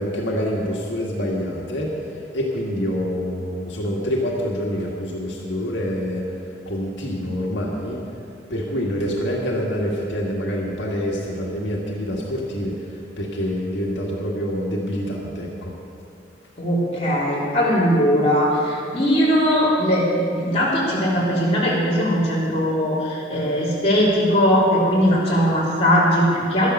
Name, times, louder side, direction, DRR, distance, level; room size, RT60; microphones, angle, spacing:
voice 1, 0.0-1.9 2.3-6.2 6.7-8.0 8.5-12.7 13.2-15.7, equal, 85° left, -2 dB, 1.7 m, -26 dB
voice 2, 16.6-26.7, equal, 35° left, -7 dB, 3.3 m, -19 dB
12.5 x 10.5 x 6.5 m, 2.5 s
head